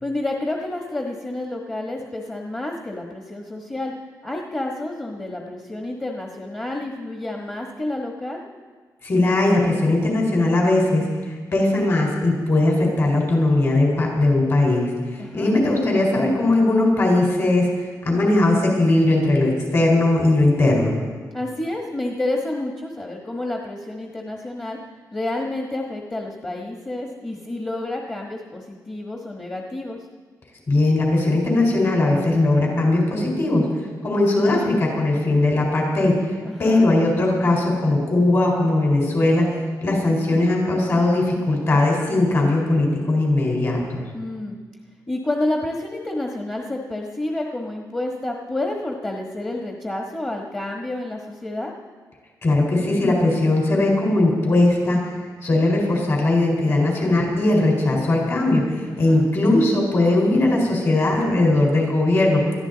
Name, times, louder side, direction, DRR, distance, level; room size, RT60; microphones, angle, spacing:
voice 1, 0.0-3.9 4.2-8.4 15.2-15.5 21.3-24.8 25.1-30.0 36.4-36.8 44.1-44.6 45.1-51.7 58.9-59.3, left 1 dB, 20° left, 0 dB, 1.4 m, -29 dB
voice 2, 9.0-11.1 11.5-17.7 18.0-21.0 30.7-33.7 34.0-36.1 36.6-39.5 39.8-44.0 52.4-55.0 55.4-62.4, left 2 dB, 40° left, -1 dB, 4.3 m, -19 dB
21.5 x 14.0 x 4.0 m, 1.5 s
wide cardioid pair, 140°, 7 cm